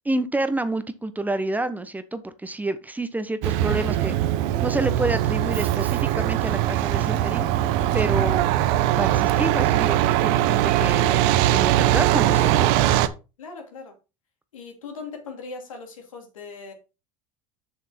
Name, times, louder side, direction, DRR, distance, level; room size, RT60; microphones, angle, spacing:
voice 1, 0.0-4.1 4.6-7.5 7.9-8.5 9.0-12.7, right 2 dB, 10° right, 1.0 m, -28 dB
Truck, 3.4-13.1, right 13 dB, 65° right, 0.8 m, -21 dB
voice 2, 13.4-14.0 14.5-16.7, left 4 dB, 90° left, 2.8 m, -39 dB
7.0 x 6.5 x 4.3 m
hypercardioid pair, 90°, 17 cm